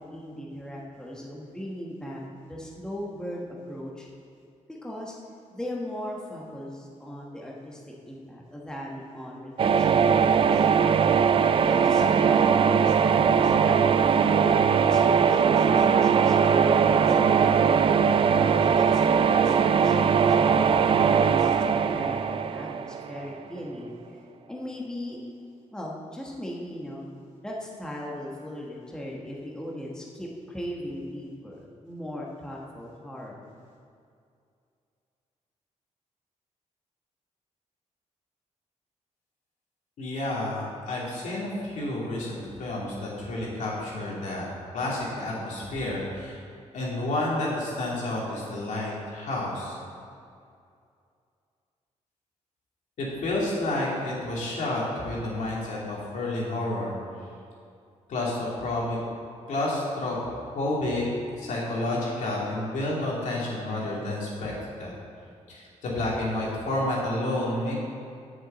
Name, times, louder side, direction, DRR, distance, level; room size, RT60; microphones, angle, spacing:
voice 1, 0.0-2.2 2.5-4.1 4.8-5.2 5.5-10.7 11.6-13.8 14.1-17.9 18.6-24.0 24.5-25.2 25.7-27.1 27.4-33.5, left 1 dB, 5° left, -3 dB, 1.3 m, -38 dB
sound 1, 9.6-23.4, right 6 dB, 45° right, 0.4 m, -21 dB
voice 2, 40.0-44.5 44.7-46.4 46.7-49.7 53.0-57.0 58.1-59.0 59.5-60.2 60.5-61.0 61.4-64.5 64.8-64.9 65.5-67.7, left 1 dB, 85° left, -5 dB, 2.7 m, -30 dB
7.1 x 7.0 x 7.9 m, 2.4 s
wide cardioid pair, 150°, 12 cm